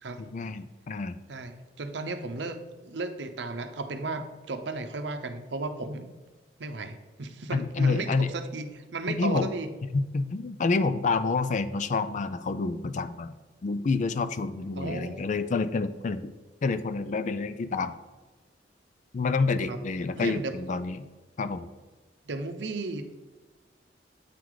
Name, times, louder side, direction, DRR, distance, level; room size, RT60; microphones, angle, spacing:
voice 1, 0.2-1.1 7.5-8.3 9.1-9.5 9.9-13.3 13.6-16.3 16.6-18.0 19.1-21.1 21.4-21.7, left 4 dB, 45° left, 12 dB, 0.4 m, -28 dB
voice 2, 1.3-6.1 6.6-9.7 14.8-15.3 19.7-19.8 20.1-20.5 22.3-23.3, right 3 dB, 75° right, 8 dB, 0.7 m, -35 dB
8.3 x 3.9 x 4.7 m, 1.3 s
head